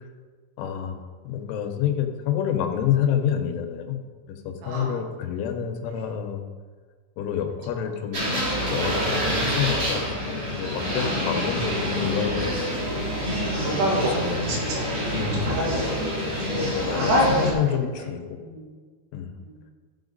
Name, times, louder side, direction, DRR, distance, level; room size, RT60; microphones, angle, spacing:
voice 1, 0.6-4.0 4.3-6.5 7.2-12.5 12.9-13.1 14.0-14.6 15.1-15.6 16.6-18.2 19.1-19.3, left 9 dB, 80° left, 5 dB, 3.2 m, -28 dB
voice 2, 4.6-5.0 5.9-6.1 10.9-11.3 13.5-14.9 15.3-15.9 16.9-17.9 18.3-18.6 19.4-19.5, equal, 85° right, -2 dB, 4.6 m, -27 dB
sound 1, 8.1-17.5, equal, 35° right, 3.0 m, -27 dB
15.0 x 5.6 x 4.0 m, 1.5 s
omnidirectional pair, 5.7 m